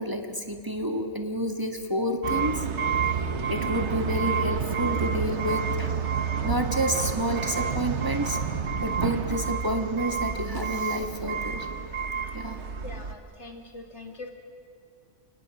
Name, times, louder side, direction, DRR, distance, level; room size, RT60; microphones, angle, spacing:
voice 1, 0.0-2.6 3.5-5.9 6.4-8.4 8.8-11.7 12.3-12.6, equal, 20° right, 3 dB, 1.6 m, -29 dB
sound 1, 2.2-13.1, right 6 dB, 75° right, 1.4 m, -29 dB
voice 2, 12.8-14.3, left 3 dB, 75° left, 2 dB, 3.0 m, -42 dB
29.5 x 26.0 x 6.1 m, 2.2 s
omnidirectional pair, 1.2 m